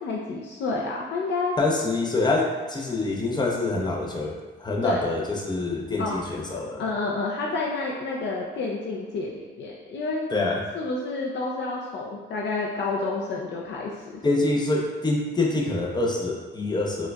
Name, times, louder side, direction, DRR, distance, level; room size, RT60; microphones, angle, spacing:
voice 1, 0.0-1.5 4.8-5.1 6.0-6.4 6.8-10.2 10.7-14.3, left 3 dB, 60° left, -2 dB, 0.4 m, -29 dB
voice 2, 1.6-6.8 10.3-10.6 14.2-17.1, left 2 dB, 20° left, -1 dB, 0.6 m, -26 dB
4.4 x 2.3 x 2.3 m, 1.4 s
cardioid pair, 90°, 20 cm